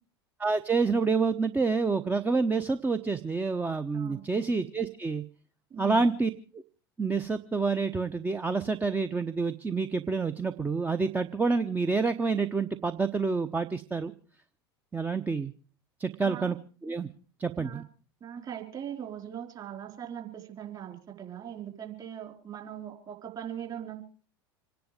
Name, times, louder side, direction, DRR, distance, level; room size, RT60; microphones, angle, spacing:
voice 1, 0.4-5.2 5.8-6.6 7.0-14.1 14.9-15.5 16.0-16.6 16.8-17.1 17.4-17.8, right 4 dB, 15° right, 9 dB, 0.9 m, -28 dB
voice 2, 3.9-4.3 5.7-6.0 16.2-16.5 17.6-17.8 18.2-24.0, right 9 dB, 30° right, 4 dB, 4.3 m, -40 dB
26.5 x 10.5 x 5.1 m, 0.39 s
figure-of-eight pair, 80°, 13 cm